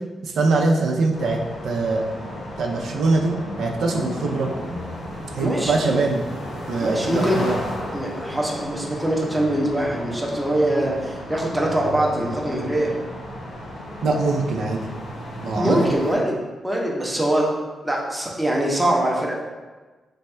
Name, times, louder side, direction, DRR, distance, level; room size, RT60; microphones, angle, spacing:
voice 1, 0.2-2.1 2.6-3.3 3.6-4.5 5.3-6.2 6.7-7.6 14.0-14.8 15.4-15.9, right 3 dB, 85° right, 0 dB, 0.4 m, -22 dB
sound 1, 1.1-16.2, left 1 dB, 75° left, 0.8 m, -34 dB
voice 2, 5.4-6.0 6.8-7.4 7.9-12.9 15.6-16.3 16.6-17.5 17.8-19.3, right 1 dB, 5° right, -3 dB, 0.6 m, -23 dB
3.4 x 2.2 x 4.2 m, 1.3 s
wide cardioid pair, 155°, 0 cm